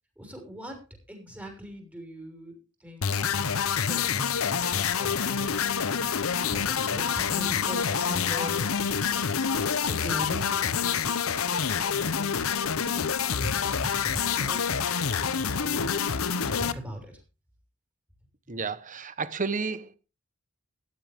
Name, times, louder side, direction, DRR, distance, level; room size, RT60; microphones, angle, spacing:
voice 1, 0.2-0.8 1.1-2.5 2.8-8.6 9.0-17.2, equal, 5° right, 6.1 m, -41 dB
sound 1, 3.0-16.7, left 7 dB, 85° left, 0.9 m, -27 dB
voice 2, 18.5-20.0, right 4 dB, 40° right, 1.1 m, -31 dB
16.5 x 13.0 x 3.6 m
head